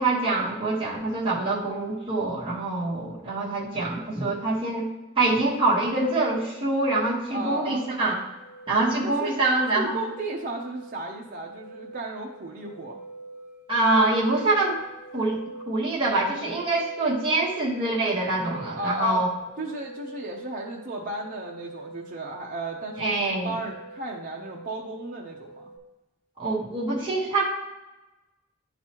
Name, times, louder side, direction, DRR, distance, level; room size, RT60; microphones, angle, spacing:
voice 1, 0.0-4.9 5.2-8.1 8.7-10.0 13.7-14.8 15.1-19.3 23.0-23.6 26.4-27.4, right 2 dB, 25° right, -7 dB, 1.3 m, -25 dB
sound 1, 6.4-25.8, right 2 dB, 5° right, 1.9 m, -44 dB
voice 2, 7.3-7.9 9.0-9.4 9.7-13.0 18.7-19.3 19.6-25.7, right 2 dB, 45° right, -1 dB, 0.7 m, -34 dB
11.0 x 4.0 x 3.0 m, 1.0 s
head